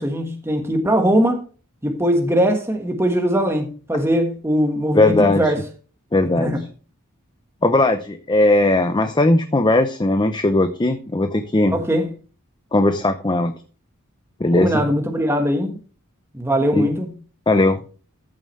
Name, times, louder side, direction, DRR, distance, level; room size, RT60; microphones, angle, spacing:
voice 1, 0.0-1.4 1.8-5.6 6.3-6.6 11.7-12.1 14.6-15.8 16.3-17.1, equal, 10° right, 1.4 m, -20 dB
voice 2, 4.9-5.5 6.1-6.5 7.6-11.8 12.7-13.5 14.4-14.8 16.7-16.9 17.5-17.8, left 2 dB, 20° left, 0.7 m, -18 dB
14.0 x 7.4 x 3.2 m
head